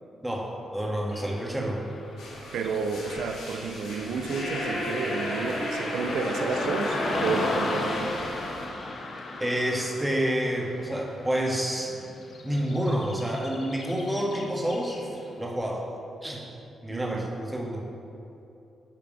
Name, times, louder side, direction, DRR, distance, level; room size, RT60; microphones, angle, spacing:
voice 1, 0.2-1.8 9.4-11.9 12.4-15.0 15.4-15.8 16.2-16.4 16.8-17.8, right 1 dB, 10° right, -2 dB, 1.4 m, -28 dB
Car passing by / Traffic noise roadway noise, 1.1-15.4, left 2 dB, 60° left, 0.8 m, -37 dB
sound 1, 2.2-8.6, left 1 dB, 85° left, 1.5 m, -33 dB
voice 2, 2.5-8.3 16.9-17.3, right 4 dB, 85° right, 6 dB, 0.5 m, -31 dB
8.9 x 3.5 x 4.9 m, 2.8 s
cardioid pair, 65°, 0 cm